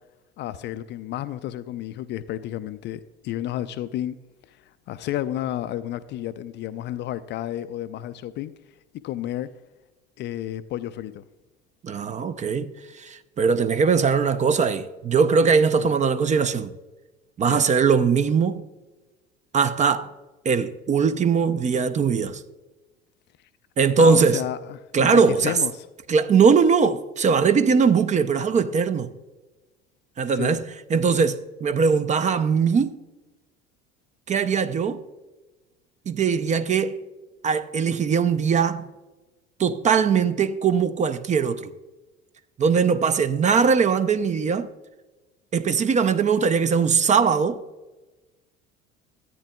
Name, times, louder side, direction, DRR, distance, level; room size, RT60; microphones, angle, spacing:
voice 1, 0.4-4.2 4.5-4.6 4.9-8.5 9.0-9.5 10.2-11.2 15.8-15.9 17.5-17.6 24.0-25.9 30.3-30.6, left 12 dB, 35° left, 0.4 m, -31 dB
voice 2, 11.8-16.7 17.4-18.6 19.5-20.1 20.4-22.4 23.8-24.4 24.9-25.6 26.1-29.1 30.2-30.6 30.9-33.0 34.3-35.0 36.1-37.0 37.4-38.9 39.6-41.7 42.6-44.7 45.5-47.6, right 5 dB, 25° right, 0.5 m, -20 dB
13.5 x 8.9 x 2.2 m
figure-of-eight pair, 65°, 31 cm